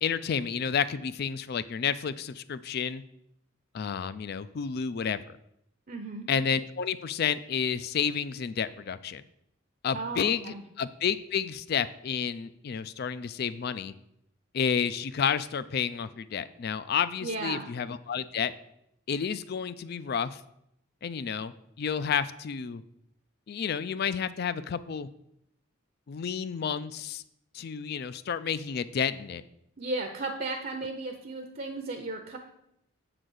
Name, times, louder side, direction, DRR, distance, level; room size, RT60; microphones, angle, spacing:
voice 1, 0.0-3.0 3.7-5.4 6.3-9.2 9.8-13.9 14.5-18.5 19.1-20.4 21.0-22.8 23.5-25.1 26.1-27.2 27.5-29.4, left 7 dB, 50° left, 15 dB, 0.3 m, -30 dB
voice 2, 5.9-6.3 9.9-10.6 17.2-17.7 29.8-32.4, right 2 dB, 45° right, 4 dB, 0.7 m, -35 dB
7.7 x 3.9 x 6.3 m, 0.79 s
head